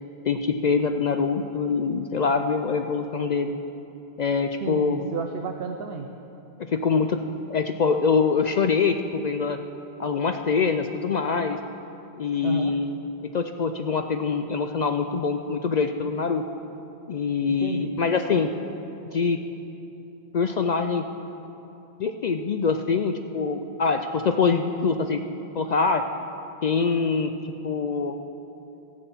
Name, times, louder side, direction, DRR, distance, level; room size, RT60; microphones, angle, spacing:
voice 1, 0.2-3.6 4.2-5.1 6.7-7.2 7.5-9.6 10.0-11.6 12.2-13.0 13.2-16.4 17.1-18.5 19.1-19.4 20.3-21.1 22.0-25.2 25.5-26.0 26.6-28.1, left 5 dB, 55° left, 7 dB, 0.5 m, -24 dB
voice 2, 4.6-6.1 12.4-12.7 17.6-17.9, right 5 dB, 75° right, 4 dB, 0.8 m, -32 dB
13.5 x 7.7 x 7.1 m, 2.9 s
omnidirectional pair, 1.0 m